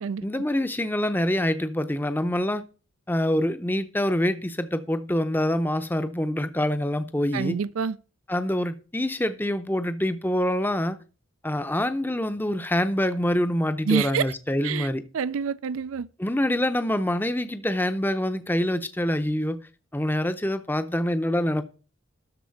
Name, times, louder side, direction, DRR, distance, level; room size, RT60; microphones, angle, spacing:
voice 1, 0.2-2.6 3.1-7.6 8.3-11.0 11.4-15.0 16.2-19.6 19.9-21.6, left 1 dB, 10° left, 0.6 m, -25 dB
voice 2, 7.3-8.0 13.9-14.3 14.6-14.9 15.1-16.1, right 6 dB, 80° right, 0.4 m, -27 dB
13.0 x 4.3 x 6.9 m
head